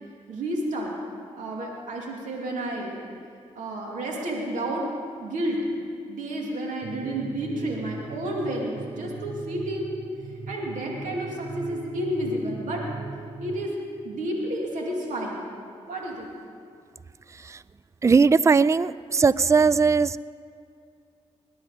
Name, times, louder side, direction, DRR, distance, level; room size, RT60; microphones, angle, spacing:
voice 1, 0.3-0.9 1.3-3.0 3.6-4.9 5.2-5.6 6.1-9.9 10.5-12.8 13.4-13.8 14.0-15.4 15.8-16.3, right 1 dB, 90° right, -1 dB, 2.6 m, -30 dB
sound 1, 6.8-13.6, right 4 dB, 70° right, 0.9 m, -39 dB
voice 2, 18.0-20.2, right 5 dB, 25° right, 19 dB, 0.3 m, -19 dB
21.5 x 10.0 x 5.1 m, 2.4 s
cardioid pair, 55°, 13 cm